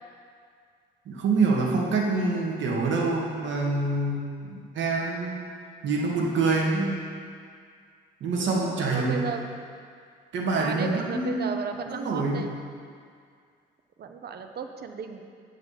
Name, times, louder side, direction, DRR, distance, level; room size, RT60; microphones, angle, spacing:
voice 1, 1.1-5.4 5.8-7.0 8.2-9.3 10.3-11.5 11.8-12.5, right 3 dB, 70° right, -1 dB, 1.7 m, -26 dB
voice 2, 8.4-9.5 10.5-12.5 14.0-15.2, right 6 dB, 55° right, 6 dB, 0.8 m, -35 dB
8.6 x 4.8 x 7.2 m, 2.2 s
cardioid pair, 90°, 20 cm